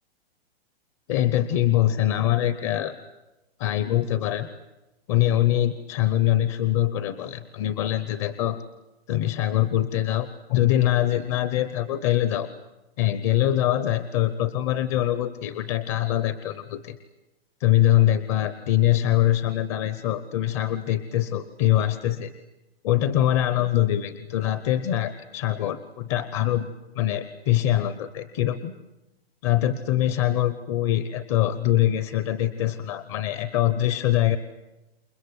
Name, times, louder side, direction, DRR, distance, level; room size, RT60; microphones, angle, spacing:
voice 1, 1.1-2.9 3.6-4.5 5.1-8.6 9.1-12.5 13.0-17.0 17.6-22.3 22.8-26.7 26.9-28.7 29.4-34.4, left 13 dB, 30° left, 13 dB, 0.8 m, -23 dB
28.5 x 22.0 x 8.1 m, 1.0 s
hypercardioid pair, 165°, 32 cm